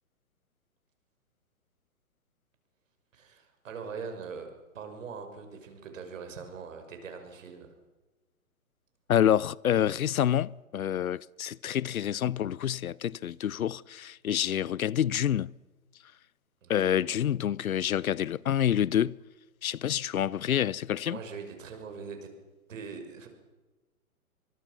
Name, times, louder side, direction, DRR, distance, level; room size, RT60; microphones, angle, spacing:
voice 1, 3.1-7.7 16.6-17.0 21.1-22.3 22.7-23.3, right 5 dB, 60° right, 6.0 m, -42 dB
voice 2, 9.1-15.5 16.7-19.2 19.6-21.2, left 10 dB, 70° left, 0.7 m, -27 dB
24.5 x 23.0 x 6.1 m
figure-of-eight pair, 130°, 44 cm